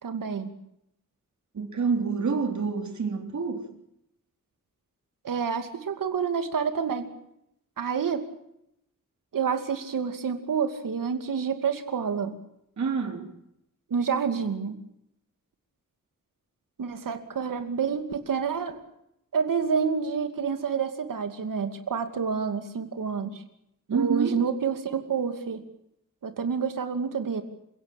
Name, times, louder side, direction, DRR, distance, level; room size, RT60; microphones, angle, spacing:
voice 1, 0.0-0.5 5.2-7.1 7.8-8.3 9.3-12.3 13.9-14.8 16.8-18.7 19.3-23.4 23.9-25.6 26.2-27.4, right 6 dB, 85° right, 2.6 m, -28 dB
voice 2, 1.5-3.7 12.8-13.3 23.9-24.4, right 5 dB, 60° right, 3.9 m, -27 dB
28.5 x 16.5 x 8.8 m
wide cardioid pair, 120°, 32 cm